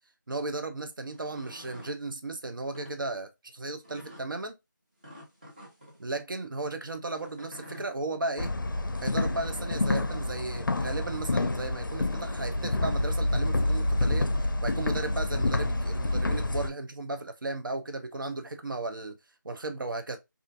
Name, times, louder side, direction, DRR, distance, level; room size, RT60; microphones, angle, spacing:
voice 1, 0.3-4.5 6.0-8.5 9.0-14.3 14.6-19.2 19.4-20.2, right 2 dB, 90° right, 0.5 m, -35 dB
sound 1, 1.0-2.0 2.6-2.9 3.8-4.2 5.0-6.0 7.2-7.9 9.1-9.8, equal, 25° right, 0.7 m, -48 dB
sound 2, 8.4-16.7, left 2 dB, 85° left, 0.4 m, -28 dB
2.5 x 2.4 x 2.4 m
figure-of-eight pair, 170°, 11 cm